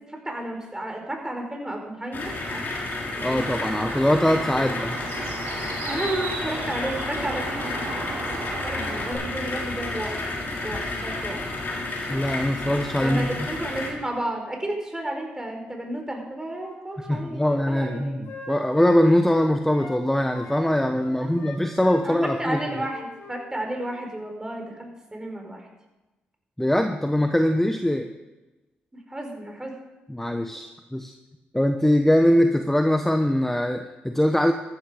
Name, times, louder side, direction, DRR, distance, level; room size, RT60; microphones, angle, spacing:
voice 1, 0.1-2.6 3.1-3.6 4.6-4.7 5.8-7.8 8.6-10.2 10.6-11.5 13.0-18.2 21.1-21.6 22.0-25.7 29.1-29.7, right 1 dB, 15° right, 2 dB, 4.7 m, -32 dB
sound 1, 2.1-13.9, left 2 dB, 50° left, 3.7 m, -31 dB
voice 2, 3.2-4.9 12.1-13.3 17.1-22.8 26.6-28.1 30.1-31.1 31.5-34.5, left 1 dB, 5° left, 6 dB, 1.1 m, -22 dB
Bird, 3.4-9.1, right 3 dB, 80° right, 3.6 m, -36 dB
Wind instrument woodwind instrument, 16.5-20.0 20.3-23.4 23.7-23.9, left 3 dB, 70° left, 4.3 m, -42 dB
14.0 x 12.0 x 5.1 m, 1.1 s
supercardioid pair, 50°, 4 cm